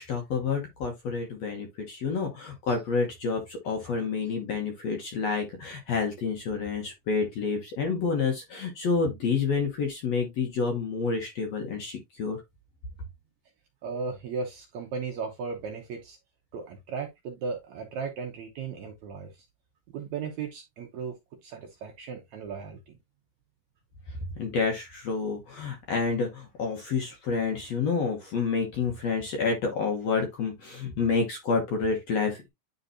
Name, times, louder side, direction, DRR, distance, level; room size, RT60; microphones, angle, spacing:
voice 1, 0.0-12.4 24.4-32.5, left 5 dB, 65° left, 1.7 m, -29 dB
voice 2, 13.8-16.2 16.5-19.3 19.9-21.1 21.4-22.9, right 5 dB, 75° right, 1.7 m, -36 dB
9.8 x 4.0 x 2.7 m
omnidirectional pair, 4.4 m